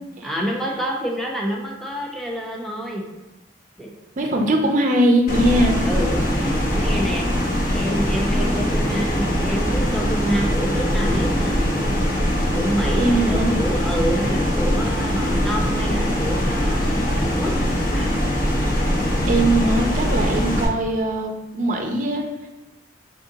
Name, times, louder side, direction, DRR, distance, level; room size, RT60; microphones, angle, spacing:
voice 1, 0.2-3.0 3.8-3.9 5.8-7.2 7.7-11.6 12.5-17.5 17.9-18.1, equal, ahead, -1 dB, 0.6 m, -27 dB
voice 2, 4.2-5.8 13.0-13.6 19.3-22.3, right 1 dB, 40° right, 3 dB, 0.5 m, -21 dB
sound 1, 5.3-20.7, equal, 45° left, 0.7 m, -22 dB
4.9 x 3.7 x 2.7 m, 1.0 s
head